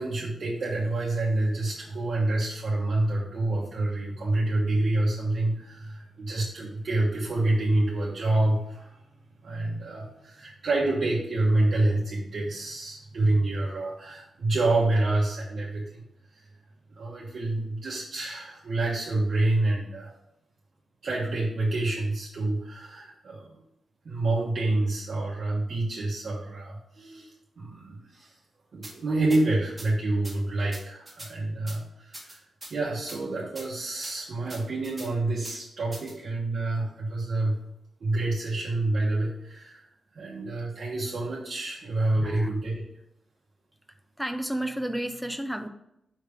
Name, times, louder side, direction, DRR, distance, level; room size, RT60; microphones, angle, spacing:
voice 1, 0.0-9.0 9.4-16.0 16.3-16.4 16.9-20.1 21.0-23.6 24.0-27.3 27.6-28.3 28.7-32.4 32.7-37.6 38.0-39.9 40.1-42.8, right 2 dB, 60° right, 1.2 m, -27 dB
sound 1, 28.8-28.9 29.3-29.4 29.8-29.9 30.2-30.4 30.7-31.3 31.7-31.8 32.1-32.7 33.1-33.2 33.6-33.7 34.0-34.1 34.5-35.1 35.4-35.6 35.9-36.1, right 1 dB, 20° right, 1.7 m, -42 dB
voice 2, 44.2-45.7, right 1 dB, ahead, 0.5 m, -31 dB
5.5 x 3.6 x 5.1 m
wide cardioid pair, 100°, 0 cm